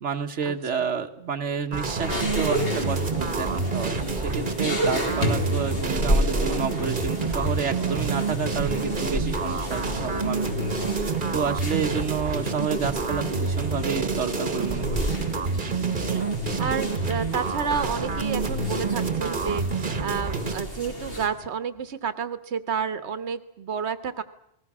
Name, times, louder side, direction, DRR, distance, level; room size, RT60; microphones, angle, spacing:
voice 1, 0.0-15.2, right 6 dB, 90° right, 5 dB, 1.5 m, -30 dB
sound 1, 1.7-20.6, right 4 dB, 45° right, 1.5 m, -28 dB
sound 2, 2.0-21.3, equal, 55° left, 3.8 m, -32 dB
voice 2, 16.6-19.6 20.0-24.2, right 6 dB, 75° right, 11 dB, 1.5 m, -30 dB
29.5 x 20.5 x 6.1 m, 0.75 s
omnidirectional pair, 1.2 m